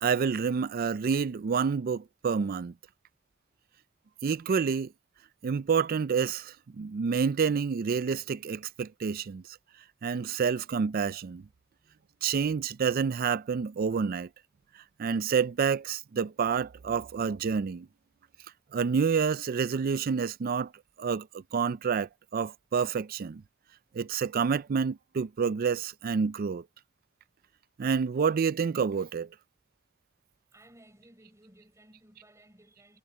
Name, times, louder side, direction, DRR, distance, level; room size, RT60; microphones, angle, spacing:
voice 1, 0.0-2.7 4.2-4.9 5.4-9.6 10.0-11.4 12.2-14.3 15.0-17.9 18.7-20.7 21.0-23.4 23.9-26.6 27.8-29.3, right 6 dB, 50° right, 0.4 m, -28 dB
voice 2, 30.5-33.0, right 1 dB, 15° right, 5.9 m, -57 dB
head